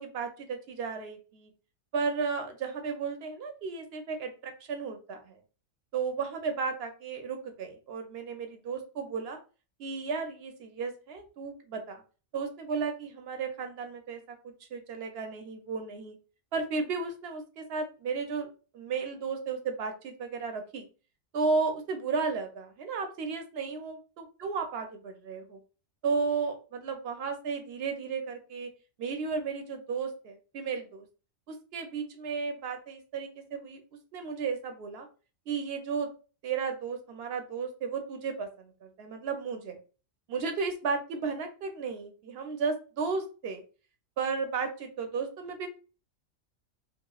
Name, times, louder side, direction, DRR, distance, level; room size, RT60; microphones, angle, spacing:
voice 1, 0.0-1.5 1.9-5.4 5.9-9.4 9.8-12.0 12.3-16.1 16.5-18.5 18.7-20.9 21.3-25.6 26.0-28.7 29.0-31.0 31.5-33.8 34.1-35.1 35.5-36.1 36.4-39.8 40.3-43.6 44.2-45.7, right 5 dB, 60° right, 6 dB, 0.7 m, -34 dB
2.9 x 2.5 x 2.3 m, 0.35 s
omnidirectional pair, 1.4 m